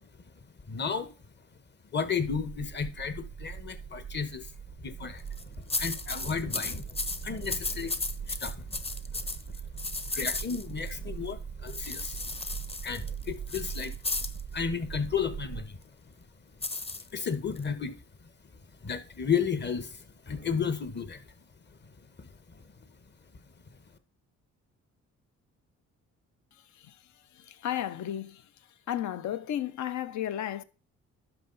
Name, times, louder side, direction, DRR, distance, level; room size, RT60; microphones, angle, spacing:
voice 1, 0.7-1.1 1.9-4.5 4.8-5.2 5.6-9.3 9.7-13.9 14.5-15.8 17.1-18.0 18.8-21.2 22.2-22.6, left 6 dB, 35° left, 1.2 m, -33 dB
sound 1, 2.2-15.6, right 7 dB, 30° right, 0.4 m, -41 dB
sound 2, 5.2-5.4 5.7-10.9 11.7-14.4 16.6-17.6, left 3 dB, 20° left, 0.8 m, -35 dB
voice 2, 27.4-28.4 28.9-30.6, left 11 dB, 70° left, 0.7 m, -33 dB
11.0 x 5.6 x 4.0 m
cardioid pair, 90°, 30 cm